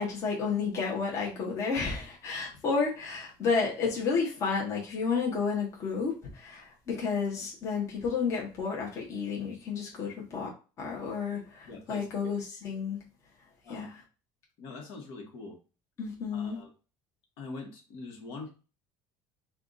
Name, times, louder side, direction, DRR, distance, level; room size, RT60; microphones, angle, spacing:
voice 1, 0.0-10.5 10.8-13.0 13.7-13.9 16.0-16.6, left 5 dB, 30° left, 1.0 m, -31 dB
voice 2, 11.7-12.1 13.6-13.9 14.6-15.6 16.3-16.7 17.4-18.5, left 3 dB, 65° left, 1.3 m, -43 dB
4.3 x 2.4 x 3.9 m
cardioid pair, 175°, 9 cm